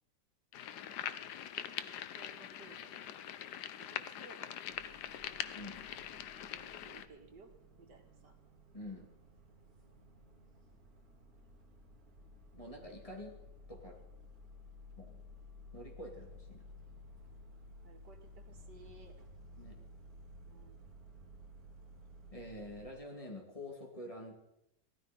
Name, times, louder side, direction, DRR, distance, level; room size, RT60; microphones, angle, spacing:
sound 1, 0.5-7.1, left 10 dB, 75° left, 1.3 m, -43 dB
voice 1, 0.9-1.3 2.1-5.0 6.5-8.4 9.8-10.3 17.8-19.2 20.5-20.8, right 3 dB, 75° right, 3 dB, 2.5 m, -60 dB
sound 2, 4.7-22.9, left 1 dB, 60° right, 2.2 m, -55 dB
voice 2, 5.5-5.9 8.7-9.1 12.5-13.4 13.7-14.0 15.0-15.2 15.7-16.6 19.6-19.8 22.3-24.4, left 1 dB, 20° left, 0 dB, 3.1 m, -47 dB
17.0 x 13.5 x 5.6 m, 0.85 s
omnidirectional pair, 1.8 m